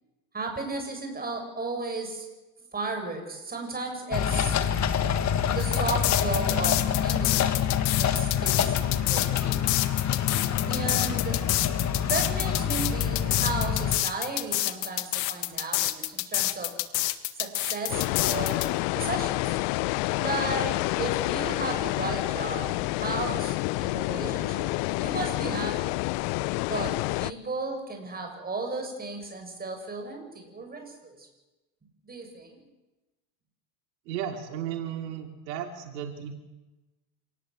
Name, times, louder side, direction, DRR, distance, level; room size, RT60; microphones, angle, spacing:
voice 1, 0.3-2.3 2.7-4.6 5.5-7.6 8.0-8.8 9.0-9.7 10.7-11.4 12.0-16.8 17.4-19.6 20.2-26.0 26.6-31.3 32.1-32.6, right 3 dB, 20° right, 3 dB, 7.2 m, -34 dB
sound 1, 4.1-14.0, left 8 dB, 35° left, 1.8 m, -26 dB
sound 2, 5.6-18.7, left 18 dB, 80° left, 1.9 m, -27 dB
sound 3, 17.9-27.3, left 21 dB, 60° left, 0.8 m, -28 dB
voice 2, 34.0-36.3, right 9 dB, 85° right, 4 dB, 3.2 m, -35 dB
27.5 x 19.0 x 7.9 m, 1.1 s
supercardioid pair, 120°, 49 cm